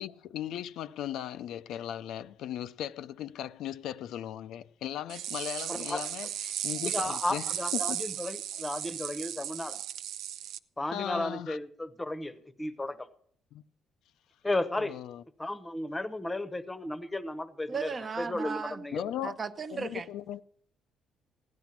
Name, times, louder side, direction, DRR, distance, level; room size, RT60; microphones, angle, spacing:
voice 1, 0.0-7.4 7.7-8.0 10.9-11.6 13.5-13.6 14.8-15.2 18.9-19.4 19.7-20.4, left 11 dB, 75° left, 0.5 m, -37 dB
sound 1, 5.1-10.6, right 11 dB, 75° right, 0.6 m, -36 dB
voice 2, 5.7-6.0 6.8-9.8 10.8-13.1 14.4-15.0 15.4-19.0, left 1 dB, 10° left, 0.9 m, -34 dB
voice 3, 17.7-18.8 19.2-20.1, right 5 dB, 30° right, 0.7 m, -36 dB
16.0 x 10.5 x 5.9 m
cardioid pair, 140°, 0 cm